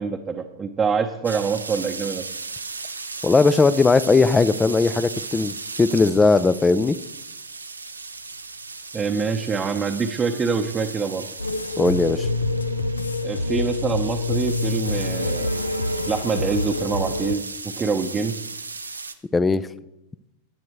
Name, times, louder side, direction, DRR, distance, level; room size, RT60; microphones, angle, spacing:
voice 1, 0.0-2.3 8.9-11.3 13.2-15.5 16.1-18.4, right 5 dB, 20° right, 2 dB, 0.8 m, -25 dB
sound 1, 1.2-19.1, right 4 dB, 90° right, 0.7 m, -36 dB
voice 2, 3.2-7.0 11.8-12.3 19.3-19.7, left 3 dB, 15° left, 17 dB, 0.4 m, -18 dB
sound 2, 11.4-17.4, left 2 dB, 85° left, 0.5 m, -26 dB
16.0 x 9.5 x 3.1 m, 0.90 s
figure-of-eight pair, 95°, 0 cm